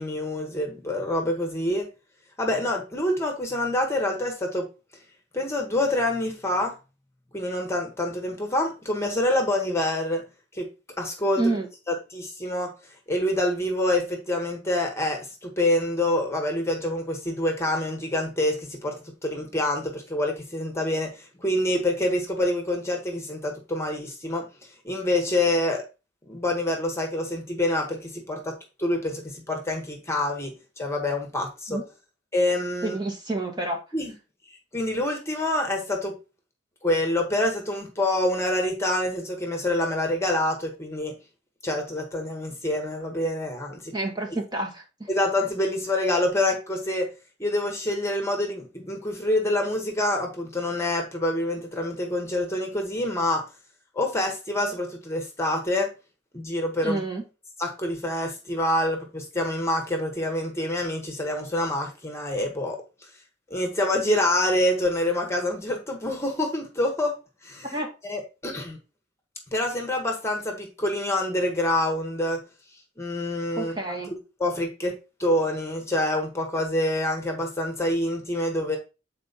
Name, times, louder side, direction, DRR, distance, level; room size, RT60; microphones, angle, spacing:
voice 1, 0.0-1.9 2.4-4.6 5.3-6.7 7.3-10.2 10.5-10.7 11.0-11.5 11.9-12.7 13.1-18.9 19.2-24.4 24.8-25.8 26.2-28.5 28.8-31.8 32.3-33.0 33.9-34.1 34.7-36.1 36.8-41.1 41.6-43.8 45.1-47.1 47.4-53.4 53.9-55.9 56.3-57.0 57.6-62.8 63.5-67.2 67.4-67.7 68.0-68.8 69.5-72.4 73.0-73.7 74.1-74.9 75.2-78.8, left 1 dB, 15° left, 3 dB, 1.4 m, -26 dB
voice 2, 11.3-11.7 31.7-31.8 32.8-33.8 43.9-45.1 56.8-57.2 67.7-67.9 73.5-74.1, right 2 dB, 25° right, 1 dB, 1.6 m, -29 dB
7.5 x 4.4 x 4.1 m, 0.29 s
head